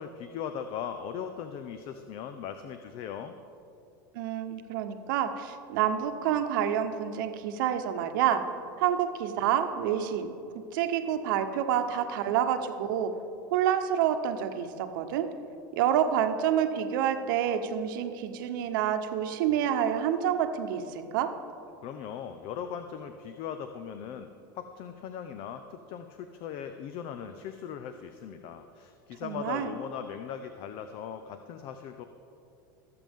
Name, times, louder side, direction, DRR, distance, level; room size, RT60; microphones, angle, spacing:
voice 1, 0.0-3.3 21.8-24.3 24.5-32.0, left 8 dB, 50° left, 9 dB, 0.6 m, -39 dB
voice 2, 4.1-8.4 8.8-10.3 10.7-13.1 13.5-15.3 15.7-21.3 29.2-29.7, right 9 dB, 70° right, 7 dB, 1.0 m, -28 dB
20.0 x 7.7 x 3.6 m, 2.7 s
hypercardioid pair, 105°, 11 cm